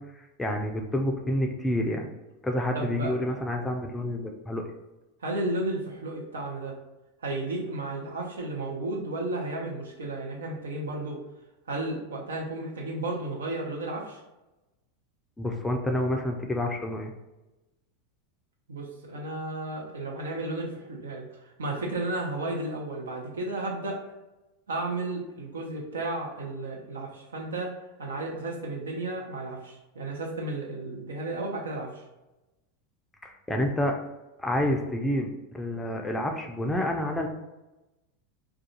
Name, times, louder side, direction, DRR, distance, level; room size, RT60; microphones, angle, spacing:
voice 1, 0.0-2.1 2.4-4.6 15.4-17.1 33.2-34.0 34.4-37.3, left 1 dB, 10° left, 2 dB, 0.4 m, -29 dB
voice 2, 2.7-3.4 5.2-6.8 7.2-11.2 11.7-14.2 18.7-24.0 24.7-32.0, right 2 dB, 85° right, 0 dB, 0.6 m, -33 dB
2.4 x 2.2 x 2.8 m, 1.0 s
hypercardioid pair, 100°, 0 cm